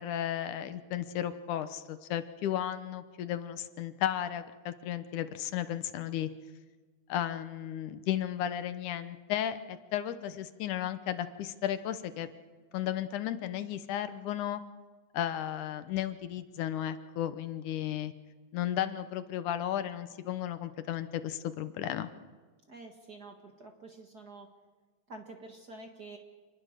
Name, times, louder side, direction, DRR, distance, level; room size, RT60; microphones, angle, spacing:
voice 1, 0.0-6.3 7.1-12.3 12.7-14.6 15.1-18.1 18.5-22.1, left 11 dB, 80° left, 11 dB, 2.5 m, -34 dB
voice 2, 22.7-24.5 25.1-26.2, right 2 dB, 40° right, 3 dB, 1.8 m, -48 dB
27.0 x 20.5 x 6.6 m, 1.4 s
omnidirectional pair, 3.5 m